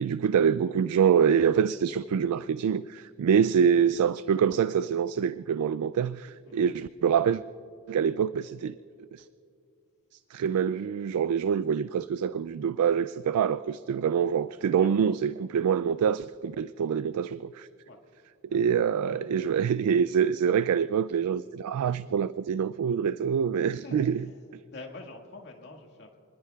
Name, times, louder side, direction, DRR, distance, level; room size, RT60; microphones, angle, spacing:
voice 1, 0.0-7.4 7.9-8.7 9.1-9.3 10.3-17.7 18.5-24.2, right 7 dB, 80° right, 0.3 m, -25 dB
voice 2, 23.7-24.3 24.7-26.2, left 2 dB, 50° left, 1.9 m, -46 dB
29.5 x 21.0 x 2.4 m
head